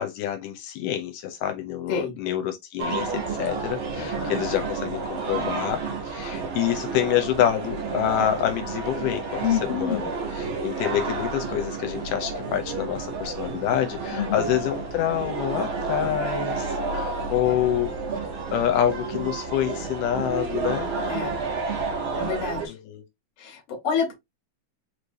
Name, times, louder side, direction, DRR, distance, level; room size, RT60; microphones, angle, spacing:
voice 1, 0.0-17.9 18.5-20.9 22.7-23.0, left 11 dB, 80° left, 2.2 m, -27 dB
sound 1, 2.8-22.7, right 4 dB, 60° right, 1.4 m, -30 dB
voice 2, 4.0-4.4 9.4-10.0 14.1-14.5 17.4-17.6 21.0-21.4 22.1-22.7 23.4-24.1, left 7 dB, 55° left, 1.7 m, -28 dB
4.9 x 3.1 x 2.6 m
omnidirectional pair, 3.8 m